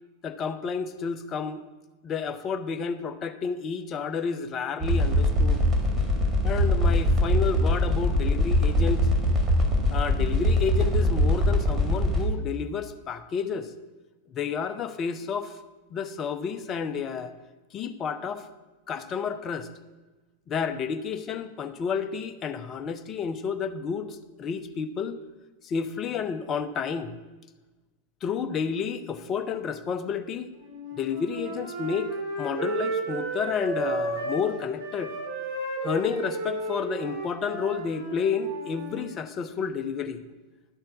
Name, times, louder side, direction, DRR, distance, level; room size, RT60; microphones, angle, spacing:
voice 1, 0.2-1.6 2.0-5.6 6.4-9.1 9.9-13.7 14.3-15.6 15.9-17.3 17.7-18.5 18.9-19.7 20.5-25.2 25.6-27.1 28.2-30.5 31.0-32.1 32.4-35.1 35.8-40.2, left 6 dB, 30° left, 9 dB, 0.6 m, -30 dB
sound 1, 4.8-12.3, left 1 dB, 20° right, 1.8 m, -22 dB
Wind instrument woodwind instrument, 30.6-34.5 34.8-39.1, right 2 dB, 65° right, 2.7 m, -33 dB
11.5 x 4.4 x 7.0 m, 1.2 s
figure-of-eight pair, 90°, 0 cm